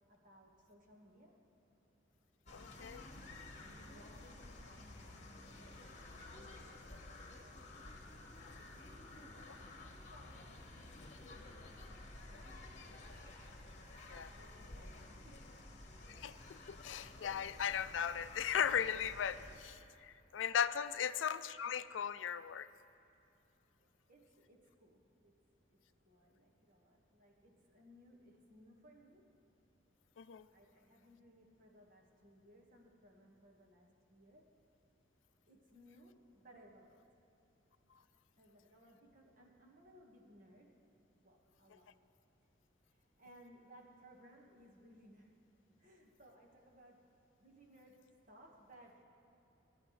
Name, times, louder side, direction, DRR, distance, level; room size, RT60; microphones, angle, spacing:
voice 1, 0.1-1.4 3.6-7.8 8.6-13.0 14.4-15.5 19.8-20.0 20.9-21.0 23.8-25.3 25.7-29.3 30.5-34.5 35.5-37.0 38.3-40.7 41.2-41.9 42.9-45.3 45.8-47.0 47.4-49.0, equal, 45° right, 0 dB, 1.6 m, -63 dB
voice 2, 2.5-3.0 8.4-8.5 14.1-14.3 16.1-16.4 16.7-22.7 30.2-30.4, left 8 dB, 85° left, 13 dB, 0.4 m, -37 dB
sound 1, 2.5-19.6, left 2 dB, 40° left, 1.3 m, -53 dB
24.0 x 11.0 x 3.2 m, 2.8 s
head